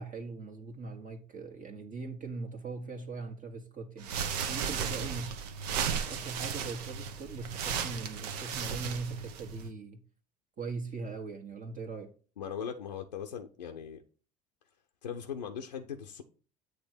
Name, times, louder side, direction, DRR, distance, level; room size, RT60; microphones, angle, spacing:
voice 1, 0.0-4.1 4.5-5.5 5.9-10.0 10.6-12.1, right 4 dB, 40° right, 1.3 m, -40 dB
sound 1, 4.0-9.7, right 7 dB, 70° right, 0.9 m, -35 dB
voice 2, 12.4-14.0 15.0-16.2, left 7 dB, 85° left, 0.7 m, -39 dB
8.3 x 3.3 x 6.5 m
hypercardioid pair, 60°, 21 cm